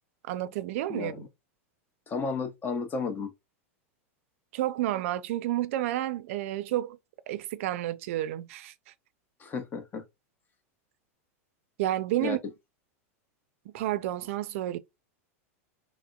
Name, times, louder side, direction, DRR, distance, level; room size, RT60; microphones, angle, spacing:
voice 1, 0.3-1.3 4.5-7.0 7.3-8.7 11.8-12.4 13.7-14.8, right 14 dB, 65° right, 0.4 m, -30 dB
voice 2, 0.9-1.3 2.1-3.3 9.4-10.0 12.2-12.4, left 4 dB, 25° left, 0.7 m, -33 dB
3.5 x 2.1 x 2.3 m
hypercardioid pair, 120°, 8 cm